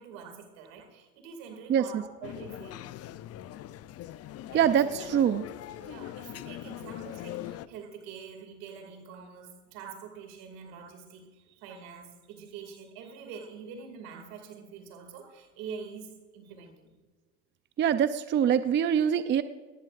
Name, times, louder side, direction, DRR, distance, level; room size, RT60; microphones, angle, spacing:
voice 1, 0.0-2.8 4.5-4.8 5.8-11.3 11.6-17.0, right 6 dB, 75° right, 6 dB, 2.5 m, -45 dB
voice 2, 1.7-2.0 4.5-5.4 17.8-19.4, right 9 dB, 35° right, 12 dB, 0.5 m, -24 dB
sound 1, 2.2-7.7, left 13 dB, 45° left, 0.5 m, -41 dB
18.5 x 11.0 x 2.5 m, 1.4 s
supercardioid pair, 90°, 34 cm